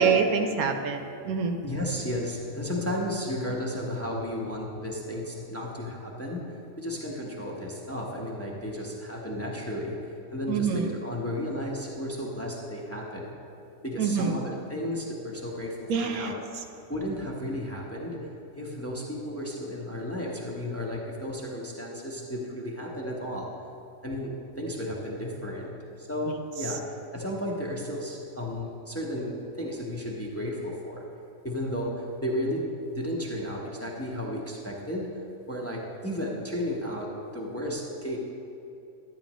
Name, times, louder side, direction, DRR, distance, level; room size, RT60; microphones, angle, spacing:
voice 1, 0.0-1.6 10.5-10.8 14.0-14.3 15.9-16.3, right 5 dB, 85° right, 5 dB, 1.2 m, -25 dB
voice 2, 1.6-13.3 13.8-16.4 16.9-18.3 18.5-23.5 24.0-31.0 31.4-35.1 35.5-38.2, left 1 dB, 10° left, -3 dB, 0.9 m, -33 dB
12.0 x 9.1 x 3.0 m, 2.7 s
omnidirectional pair, 1.5 m